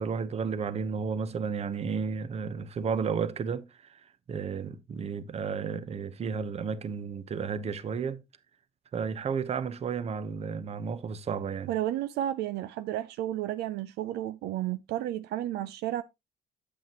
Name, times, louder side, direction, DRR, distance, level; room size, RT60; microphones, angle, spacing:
voice 1, 0.0-4.0 4.3-8.2 8.9-11.7, right 6 dB, 40° right, 0.8 m, -32 dB
voice 2, 11.7-16.0, right 13 dB, 75° right, 0.5 m, -32 dB
8.4 x 7.7 x 2.9 m
cardioid pair, 110°, 17 cm